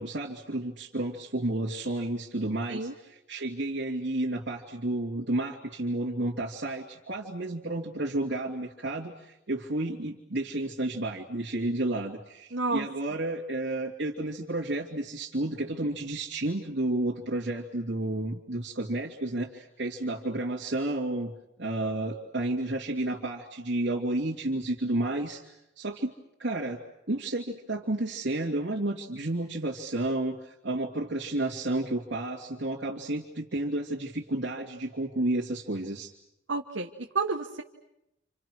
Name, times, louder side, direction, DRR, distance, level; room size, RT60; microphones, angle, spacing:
voice 1, 0.0-21.3 21.6-26.1 26.4-26.8 27.1-36.1, right 2 dB, 70° right, -3 dB, 2.5 m, -31 dB
voice 2, 12.5-12.8 36.5-36.9 37.1-37.6, right 3 dB, 85° right, 2 dB, 1.4 m, -30 dB
30.0 x 27.5 x 6.3 m, 0.85 s
head